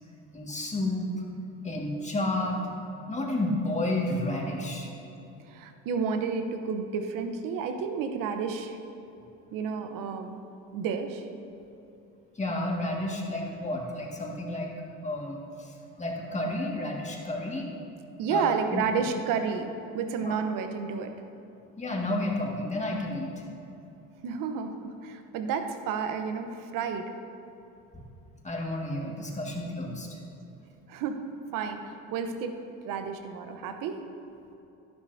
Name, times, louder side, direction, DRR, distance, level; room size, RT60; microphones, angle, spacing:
voice 1, 0.3-1.3 1.6-2.6 3.1-4.9 12.4-14.7 15.0-17.7 18.3-18.8 20.2-20.4 21.8-23.3 27.9-28.0 28.4-30.2, left 1 dB, 20° left, -1 dB, 1.9 m, -31 dB
voice 2, 5.5-8.8 9.5-10.4 10.7-11.3 18.2-21.1 24.2-27.1 30.9-31.2 31.5-32.6 32.8-34.0, right 6 dB, 65° right, 7 dB, 1.0 m, -31 dB
11.5 x 11.0 x 2.7 m, 2.9 s
supercardioid pair, 85°, 35 cm